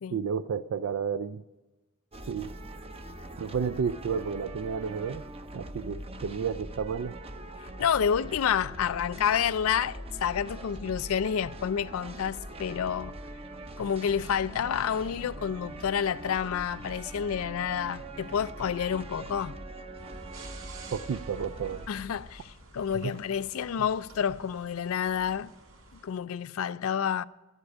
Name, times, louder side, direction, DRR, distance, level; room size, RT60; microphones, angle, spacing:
voice 1, 0.1-1.4 2.3-2.5 3.4-5.3 5.5-7.2 20.9-21.8 23.0-23.1 23.8-23.9, right 6 dB, 70° right, 0.4 m, -31 dB
sound 1, 2.1-21.9, right 1 dB, 30° right, 0.7 m, -42 dB
voice 2, 7.8-13.2 13.8-19.6 21.9-25.5 26.0-27.2, left 8 dB, 80° left, 0.4 m, -29 dB
sound 2, 19.9-26.1, right 2 dB, 85° right, 3.3 m, -49 dB
11.0 x 8.1 x 9.8 m
head